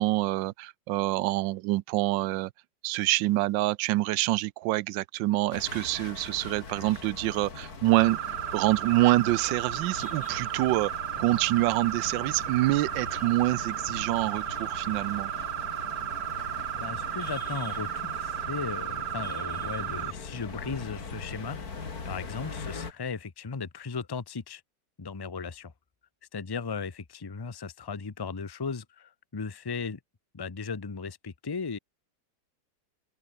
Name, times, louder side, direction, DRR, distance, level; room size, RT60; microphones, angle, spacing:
voice 1, 0.0-2.5 2.8-8.2 8.5-15.3, right 17 dB, 85° right, 1.3 m, -26 dB
sound 1, 5.5-22.9, left 4 dB, 55° left, 3.0 m, -41 dB
sound 2, 8.0-20.1, right 12 dB, 70° right, 1.4 m, -34 dB
voice 2, 16.7-21.6 22.0-24.6 25.0-25.7 26.3-30.0 30.3-31.8, left 5 dB, 30° left, 0.4 m, -36 dB
open air
omnidirectional pair, 2.0 m